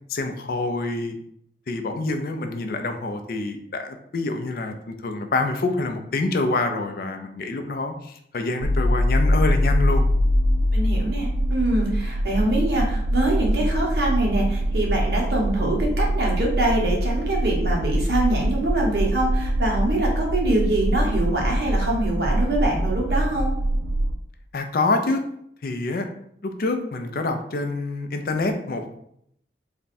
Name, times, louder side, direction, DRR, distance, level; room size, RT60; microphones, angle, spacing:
voice 1, 0.1-1.2 1.7-10.0 24.5-25.2 25.6-26.1 26.4-28.9, left 3 dB, 55° left, 6 dB, 0.4 m, -26 dB
sound 1, 8.6-24.1, equal, 85° right, 0.4 m, -23 dB
voice 2, 10.7-23.5, right 1 dB, 65° right, -2 dB, 1.0 m, -24 dB
3.4 x 2.1 x 4.1 m, 0.71 s
head